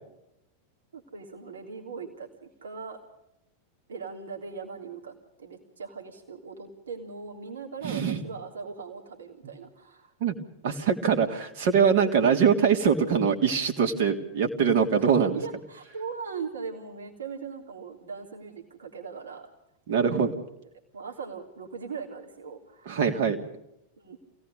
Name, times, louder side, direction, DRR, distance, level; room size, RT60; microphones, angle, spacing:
voice 1, 0.9-3.0 3.9-10.1 15.0-19.5 19.9-20.3 20.9-23.0 24.0-24.2, right 5 dB, 70° right, 2 dB, 3.4 m, -40 dB
voice 2, 7.8-8.2 10.2-10.3 10.6-15.4 19.9-20.3 22.8-23.4, right 6 dB, 55° right, 3 dB, 3.2 m, -23 dB
28.0 x 18.0 x 5.2 m, 0.82 s
figure-of-eight pair, 90°, 0 cm